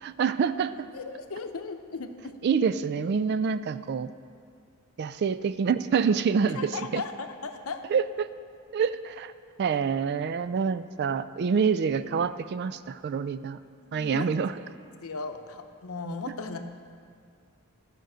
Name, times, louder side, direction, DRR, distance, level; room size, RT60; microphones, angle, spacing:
voice 1, 0.0-0.9 2.4-4.1 5.0-7.0 7.9-8.3 8.7-9.3 9.6-13.6 13.9-14.5, right 6 dB, 50° right, 13 dB, 0.3 m, -27 dB
voice 2, 0.9-2.4 6.5-7.9 13.8-14.3 15.0-16.6, left 4 dB, 75° left, 6 dB, 0.7 m, -36 dB
13.5 x 5.2 x 6.3 m, 2.3 s
head